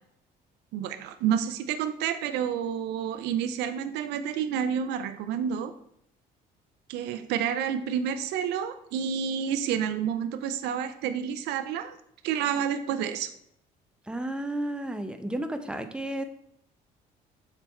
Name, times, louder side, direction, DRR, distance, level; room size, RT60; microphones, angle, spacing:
voice 1, 0.7-5.7 6.9-12.0 12.2-13.3, right 8 dB, 90° right, 10 dB, 0.5 m, -29 dB
voice 2, 14.1-16.2, right 1 dB, 5° right, 7 dB, 0.7 m, -32 dB
6.9 x 4.5 x 4.3 m, 0.73 s
cardioid pair, 110°, 17 cm